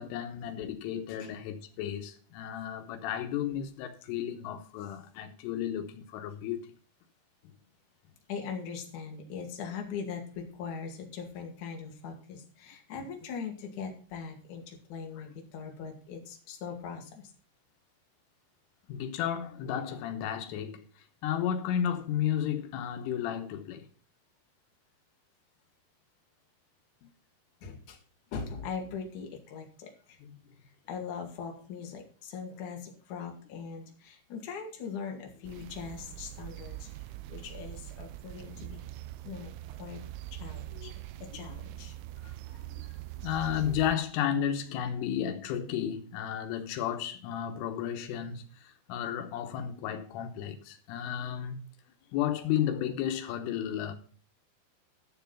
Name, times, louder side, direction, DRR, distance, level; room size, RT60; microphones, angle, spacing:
voice 1, 0.0-6.7 18.9-23.9 30.2-30.3 40.7-40.9 42.2-42.9 43.2-51.7 52.1-53.9, left 9 dB, 85° left, 3.7 m, -33 dB
voice 2, 8.3-17.3 27.6-28.0 28.3-30.2 30.8-36.9 37.3-38.8 39.2-40.0 40.3-40.9 41.2-41.9, left 6 dB, 50° left, 2.9 m, -41 dB
sound 1, 35.4-44.0, right 15 dB, 85° right, 3.2 m, -43 dB
11.5 x 7.0 x 5.5 m
omnidirectional pair, 5.6 m